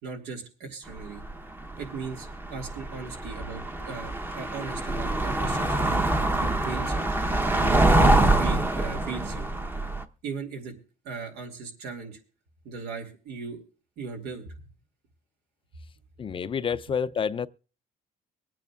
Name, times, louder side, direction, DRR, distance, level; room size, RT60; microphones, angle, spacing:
voice 1, 0.0-1.2 1.8-6.0 6.4-7.1 7.5-9.5 10.2-10.7 11.0-12.2 12.6-13.6 14.0-14.5, right 5 dB, 85° right, 2.4 m, -38 dB
sound 1, 1.0-1.3 1.6-10.0, right 2 dB, 10° right, 0.8 m, -25 dB
voice 2, 16.2-17.5, left 6 dB, 30° left, 0.5 m, -28 dB
24.0 x 9.2 x 2.4 m
cardioid pair, 110°, 17 cm